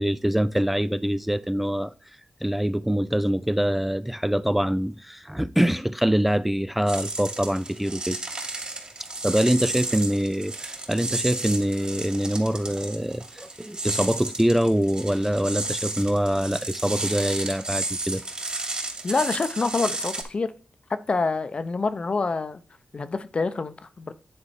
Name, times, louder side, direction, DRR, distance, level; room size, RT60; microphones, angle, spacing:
voice 1, 0.0-1.9 2.4-8.2 9.2-18.2, equal, 5° right, 0.3 m, -24 dB
sound 1, 6.9-20.2, right 2 dB, 35° right, 2.6 m, -33 dB
voice 2, 19.0-20.5 20.9-22.6 22.9-24.1, left 3 dB, 45° left, 0.7 m, -26 dB
9.8 x 4.3 x 4.3 m
wide cardioid pair, 85°, 3 cm